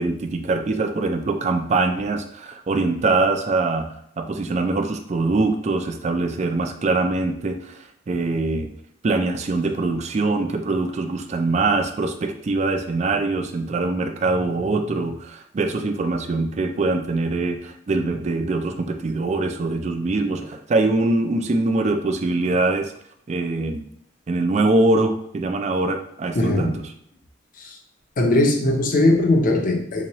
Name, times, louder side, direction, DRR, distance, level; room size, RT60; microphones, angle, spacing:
voice 1, 0.0-8.7 9.0-22.9 23.3-23.8 24.3-26.8, right 3 dB, 35° right, 6 dB, 0.3 m, -23 dB
voice 2, 26.3-26.8 27.6-27.8 28.2-30.1, left 1 dB, 45° left, 1 dB, 0.6 m, -19 dB
3.6 x 2.9 x 2.9 m, 0.69 s
head